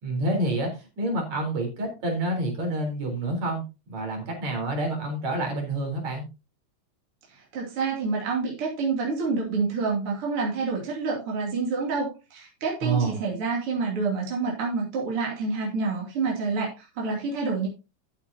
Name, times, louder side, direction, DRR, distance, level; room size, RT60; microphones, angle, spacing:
voice 1, 0.0-3.6 3.9-6.2 12.8-13.2, right 2 dB, 65° right, 2 dB, 5.1 m, -28 dB
voice 2, 7.3-17.7, right 4 dB, 50° right, -2 dB, 3.4 m, -28 dB
13.0 x 8.9 x 2.8 m, 0.28 s
omnidirectional pair, 3.4 m